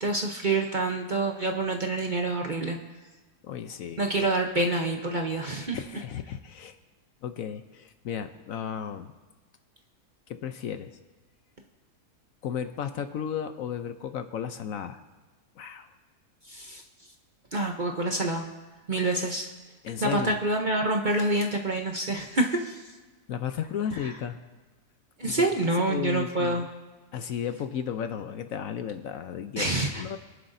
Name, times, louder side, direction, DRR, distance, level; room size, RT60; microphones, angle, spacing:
voice 1, 0.0-2.8 4.0-5.8 16.5-16.8 17.5-18.5 18.9-19.5 20.0-22.8 24.0-24.1 25.2-26.7 29.6-30.0, right 2 dB, 40° right, 2 dB, 0.8 m, -27 dB
voice 2, 3.4-4.4 5.7-6.8 7.2-9.1 10.3-11.0 12.4-15.0 15.6-15.9 19.8-20.3 23.3-24.4 25.2-26.7 27.1-29.7 29.9-30.2, left 8 dB, 65° left, 8 dB, 0.9 m, -34 dB
25.0 x 11.0 x 2.6 m, 1.3 s
omnidirectional pair, 1.7 m